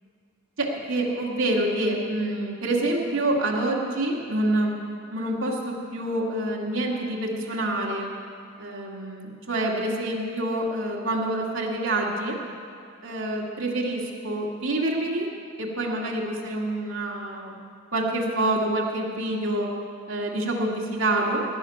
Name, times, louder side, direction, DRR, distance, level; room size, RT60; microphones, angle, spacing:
voice 1, 0.6-4.8 5.1-8.1 8.6-12.4 13.0-15.3 15.6-17.6 17.9-19.7 20.1-21.4, right 1 dB, 75° right, -2 dB, 2.0 m, -27 dB
18.5 x 6.4 x 9.5 m, 2.3 s
head